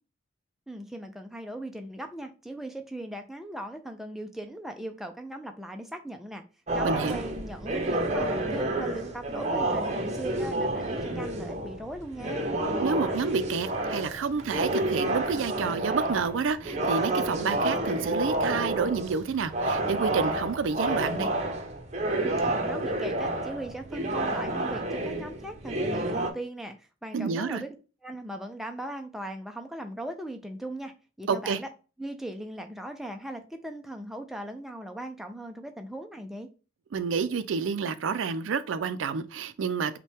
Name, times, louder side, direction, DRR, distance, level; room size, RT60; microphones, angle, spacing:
voice 1, 0.7-6.4 6.7-12.5 22.2-27.7 28.0-31.7 32.0-36.5, right 1 dB, ahead, 0.3 m, -39 dB
sound 1, 6.7-26.3, right 1 dB, 35° right, 0.6 m, -29 dB
voice 2, 6.8-7.2 12.8-21.3 27.1-27.6 31.3-31.6 36.9-40.0, right 5 dB, 70° right, 0.4 m, -29 dB
5.3 x 2.2 x 3.4 m
head